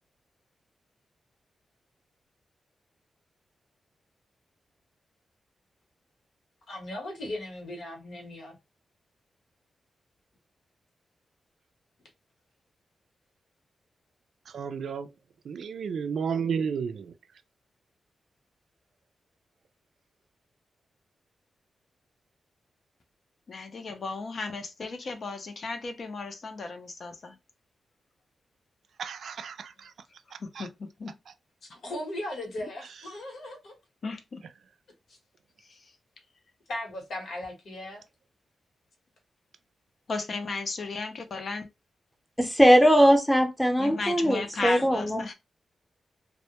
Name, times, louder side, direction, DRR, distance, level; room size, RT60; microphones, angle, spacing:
voice 1, 6.7-8.6 31.7-33.7 35.1-35.2 36.7-38.0, left 1 dB, 75° left, 1.0 m, -37 dB
voice 2, 14.5-15.1 15.4-17.1 29.0-29.9 30.3-30.7, right 6 dB, 80° right, 0.3 m, -32 dB
voice 3, 23.5-27.3 30.4-31.1 34.0-34.4 40.1-41.7 43.8-45.3, left 3 dB, 60° left, 0.5 m, -35 dB
voice 4, 42.4-45.3, equal, 5° left, 0.6 m, -20 dB
2.1 x 2.1 x 2.8 m
cardioid pair, 65°, 0 cm